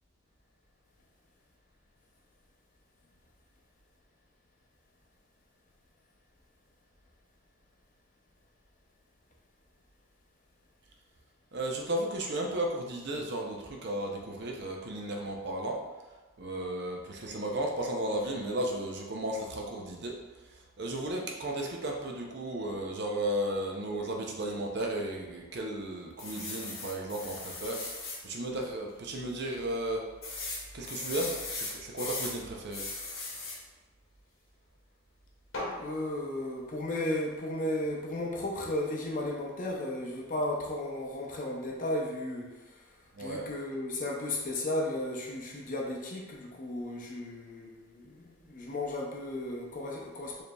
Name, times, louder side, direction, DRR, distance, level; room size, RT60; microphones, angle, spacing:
voice 1, 11.5-15.8 16.4-20.2 20.8-27.8 28.2-30.0 30.7-32.8 43.2-43.5, right 1 dB, 50° right, 0 dB, 0.6 m, -34 dB
sound 1, 26.2-28.2 28.7-28.8 29.1-29.2 30.2-32.4 32.7-33.6 35.5-35.8, left 3 dB, 80° left, 1.2 m, -38 dB
voice 2, 35.8-42.5 43.2-50.4, left 1 dB, 40° left, 0 dB, 0.5 m, -34 dB
4.7 x 3.2 x 2.3 m, 1.2 s
head